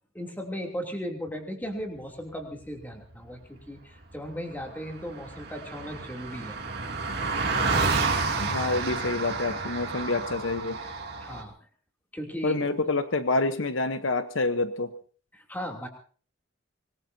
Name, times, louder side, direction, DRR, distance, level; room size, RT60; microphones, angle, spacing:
voice 1, 0.1-6.6 11.2-11.5 12.1-12.7 15.3-15.9, equal, 10° left, 1 dB, 2.9 m, -36 dB
Car passing by, 4.3-4.4 4.6-11.4, right 4 dB, 50° right, 2.6 m, -30 dB
voice 2, 8.4-10.8 12.4-14.9, left 3 dB, 70° left, 10 dB, 1.0 m, -27 dB
25.0 x 20.0 x 2.8 m, 0.42 s
head